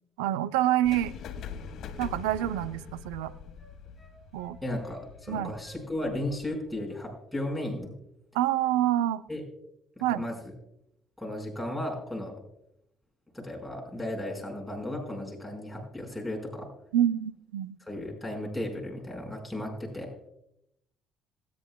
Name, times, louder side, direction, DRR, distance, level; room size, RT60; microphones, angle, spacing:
voice 1, 0.2-1.1 2.0-3.3 4.3-4.6 5.3-5.5 8.3-9.2 10.0-10.3 16.9-17.8, right 12 dB, 85° right, 13 dB, 0.5 m, -27 dB
sound 1, 0.8-6.8, left 6 dB, 65° left, 1.5 m, -43 dB
Wind instrument woodwind instrument, 1.5-6.2 6.5-7.5 7.8-8.0, left 2 dB, 25° left, 4.8 m, -54 dB
voice 2, 4.6-7.9 9.3-9.4 10.0-10.4 11.2-12.3 13.3-16.7 17.9-20.1, left 1 dB, ahead, -1 dB, 5.2 m, -35 dB
26.5 x 9.5 x 2.3 m, 0.80 s
hypercardioid pair, 60°, 0 cm